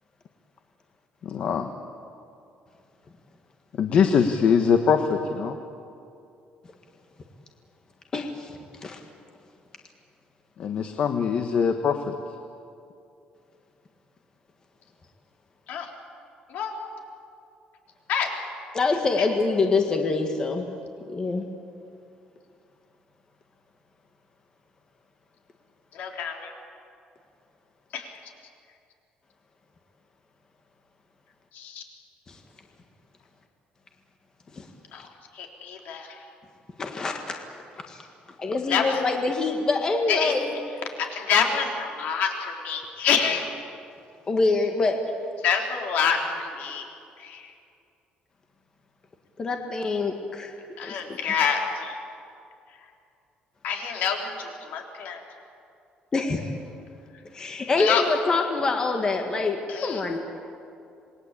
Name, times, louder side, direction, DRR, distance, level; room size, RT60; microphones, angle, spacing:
voice 1, 1.2-1.7 3.8-5.6 10.6-12.1, left 6 dB, 45° left, 6 dB, 1.3 m, -22 dB
voice 2, 8.1-8.5 8.8-9.0 18.7-20.7 21.1-21.4 32.3-32.4 34.5-34.7 36.8-37.4 37.9-38.1 38.4-40.6 44.3-45.0 49.4-50.5 50.8-51.2 56.1-56.5 57.3-60.2, left 3 dB, 25° left, 3 dB, 1.8 m, -25 dB
voice 3, 25.9-26.5 27.9-28.2 31.5-31.8 34.9-35.1 35.3-36.2 38.7-39.0 40.1-40.3 41.0-43.5 45.4-46.8 47.2-47.5 50.8-52.0 53.6-55.2 57.8-58.0 59.7-60.0, left 6 dB, 65° left, 2 dB, 4.0 m, -27 dB
27.5 x 21.0 x 8.5 m, 2.5 s
cardioid pair, 165°, 3 cm